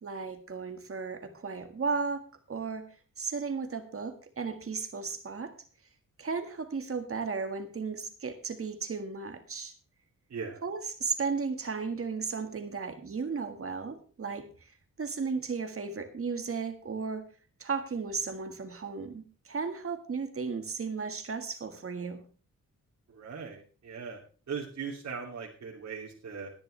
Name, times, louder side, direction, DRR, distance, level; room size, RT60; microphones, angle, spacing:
voice 1, 0.0-5.5 6.2-9.7 10.6-14.7 15.0-17.3 17.6-22.2, right 5 dB, 45° right, 7 dB, 1.8 m, -35 dB
voice 2, 10.3-10.6 23.1-24.2 24.5-26.5, right 6 dB, 65° right, -4 dB, 2.8 m, -39 dB
18.0 x 10.5 x 3.3 m, 0.38 s
wide cardioid pair, 150°, 31 cm